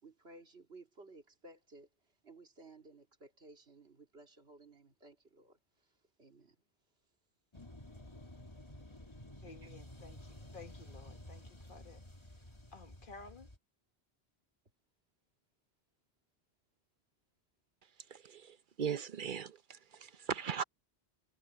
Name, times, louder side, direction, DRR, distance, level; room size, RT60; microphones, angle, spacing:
voice 1, 0.0-1.9 2.2-5.6 6.2-6.5 9.6-9.7, right 2 dB, 70° right, 3.0 m, -57 dB
sound 1, 7.5-13.6, left 1 dB, 25° left, 2.4 m, -52 dB
voice 2, 9.4-13.5, left 3 dB, 50° left, 1.6 m, -55 dB
voice 3, 18.1-20.6, right 7 dB, 55° right, 0.9 m, -39 dB
omnidirectional pair, 1.1 m